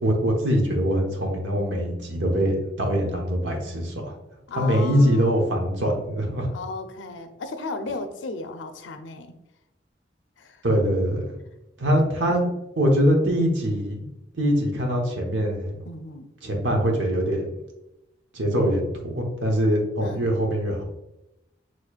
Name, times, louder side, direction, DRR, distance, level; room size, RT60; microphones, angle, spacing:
voice 1, 0.0-3.9 4.5-6.5 10.6-11.2 11.8-12.5 12.8-15.7 16.4-17.5 18.3-20.8, equal, 85° right, 1 dB, 1.1 m, -23 dB
voice 2, 4.5-5.4 6.5-9.4 10.4-10.6 11.9-12.5 14.5-14.7 15.9-16.3 19.0-19.1 20.0-20.3, left 3 dB, 85° left, 8 dB, 0.5 m, -35 dB
6.5 x 3.1 x 2.4 m, 0.90 s
head